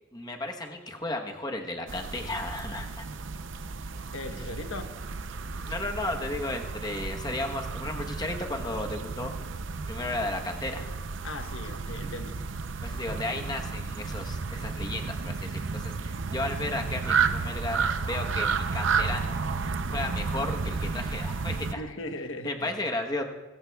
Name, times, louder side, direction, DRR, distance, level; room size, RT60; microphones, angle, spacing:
voice 1, 0.1-3.1 5.6-9.3 9.9-10.9 12.8-19.4 19.9-21.8 22.4-23.2, left 2 dB, 20° left, 3 dB, 1.0 m, -34 dB
sound 1, 1.9-21.7, right 5 dB, 70° right, 0.6 m, -32 dB
voice 2, 4.1-4.9 11.2-12.4 21.7-22.7, left 1 dB, 90° left, 7 dB, 1.0 m, -38 dB
24.0 x 14.5 x 2.3 m, 1.2 s
head